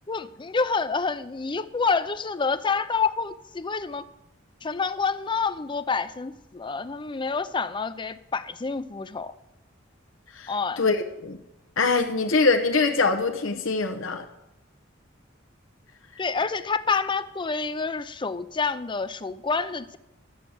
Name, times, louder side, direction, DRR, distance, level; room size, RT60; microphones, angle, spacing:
voice 1, 0.1-4.1 4.6-9.3 10.5-10.8 16.2-20.0, left 4 dB, 25° left, 12 dB, 0.5 m, -28 dB
voice 2, 10.8-11.4 11.8-14.2, left 4 dB, 90° left, 4 dB, 0.9 m, -23 dB
12.0 x 7.3 x 7.9 m, 0.91 s
head